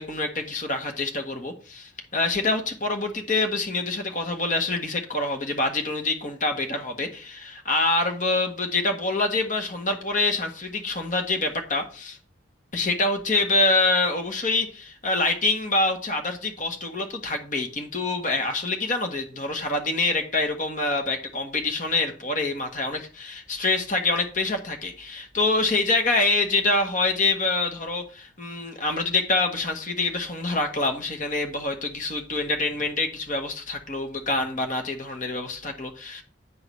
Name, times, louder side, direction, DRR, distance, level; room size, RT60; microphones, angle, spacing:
voice 1, 0.0-12.2 12.7-36.2, left 2 dB, 40° left, 5 dB, 1.6 m, -26 dB
9.7 x 3.9 x 6.3 m, 0.38 s
head